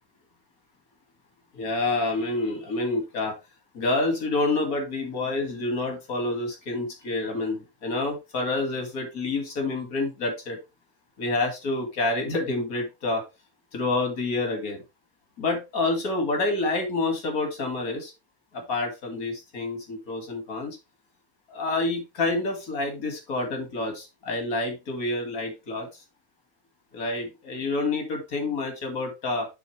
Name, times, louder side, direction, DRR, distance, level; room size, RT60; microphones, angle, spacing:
voice 1, 1.5-3.3 3.7-10.6 11.2-13.2 13.7-14.8 15.4-18.1 18.5-20.8 21.5-26.0 26.9-29.5, left 2 dB, 90° left, 3 dB, 2.6 m, -28 dB
11.0 x 4.2 x 3.2 m, 0.25 s
omnidirectional pair, 1.5 m